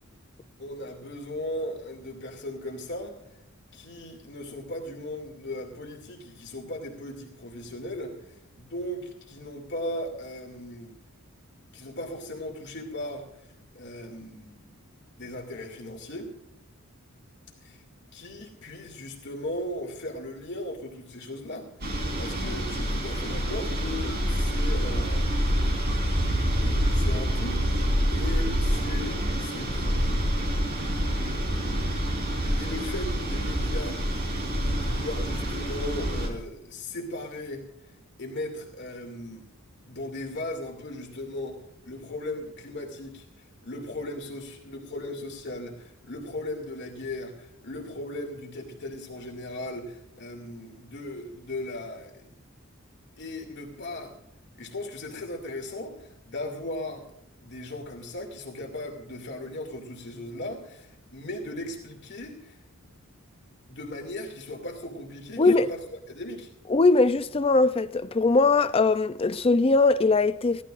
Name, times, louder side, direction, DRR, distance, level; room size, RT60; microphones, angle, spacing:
voice 1, 0.6-3.2 3.7-11.0 11.7-13.5 13.7-14.8 15.2-16.3 17.6-17.8 18.1-25.5 26.9-30.2 30.8-31.0 32.6-34.0 34.5-39.5 39.9-52.2 53.2-54.1 54.5-57.1 57.4-62.6 63.7-65.8 66.1-66.5, left 1 dB, 55° left, 2.5 m, -37 dB
sound 1, 21.8-36.3, equal, 45° right, 4.2 m, -27 dB
voice 2, 65.4-65.7 66.7-70.6, left 3 dB, 25° left, 0.5 m, -21 dB
22.5 x 16.0 x 2.5 m
head